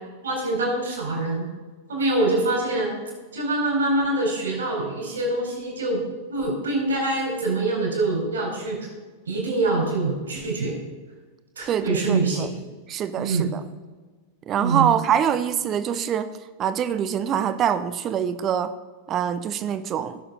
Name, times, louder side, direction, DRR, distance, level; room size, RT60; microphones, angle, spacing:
voice 1, 0.2-1.5 1.9-2.9 3.3-6.0 6.3-8.8 9.3-10.7 11.6-12.5 13.2-13.5 14.6-14.9, right 2 dB, 70° right, -1 dB, 4.2 m, -24 dB
voice 2, 11.7-12.5 12.9-13.6 14.5-16.3 16.6-18.7 19.1-20.2, right 9 dB, 30° right, 12 dB, 0.6 m, -24 dB
17.0 x 6.9 x 4.1 m, 1.4 s
figure-of-eight pair, 90°, 0 cm